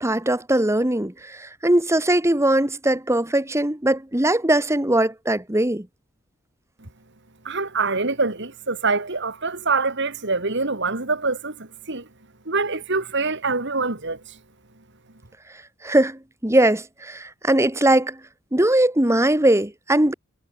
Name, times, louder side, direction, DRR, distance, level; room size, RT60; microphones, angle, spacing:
voice 1, 0.0-5.9 15.8-18.2 18.5-20.1, right 1 dB, 15° right, 1.6 m, -20 dB
voice 2, 7.4-12.1 12.4-14.4, right 3 dB, 55° right, 3.2 m, -25 dB
head